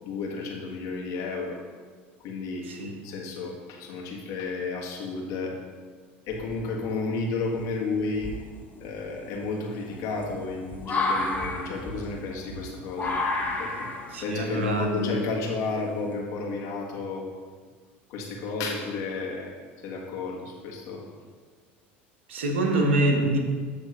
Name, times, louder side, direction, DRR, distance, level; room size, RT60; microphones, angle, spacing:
voice 1, 0.0-1.6 2.2-2.7 3.0-5.5 6.2-8.3 8.8-13.2 13.6-13.9 14.2-17.2 18.1-19.5 19.8-21.1, left 3 dB, 60° left, -1 dB, 1.6 m, -32 dB
red fox screeching, 6.3-6.9 7.5-7.6 8.1-16.2, left 2 dB, 25° left, 1.3 m, -32 dB
voice 2, 14.1-15.1 22.3-23.4, right 1 dB, 90° right, 2 dB, 1.1 m, -25 dB
8.5 x 3.5 x 5.5 m, 1.5 s
hypercardioid pair, 85°, 6 cm